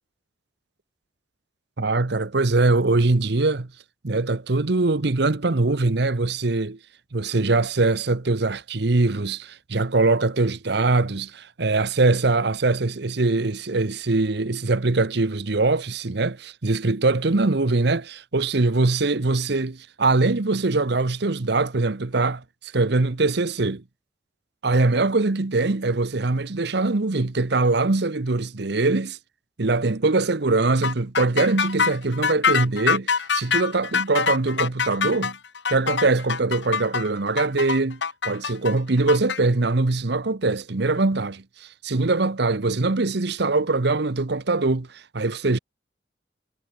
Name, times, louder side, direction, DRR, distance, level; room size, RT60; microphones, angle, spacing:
voice 1, 1.8-3.7 4.0-6.8 7.1-23.8 24.6-29.2 29.6-35.4 35.7-38.0 38.2-45.6, right 3 dB, 60° right, 1.0 m, -22 dB
sound 1, 30.8-39.4, left 6 dB, 70° left, 1.3 m, -24 dB
head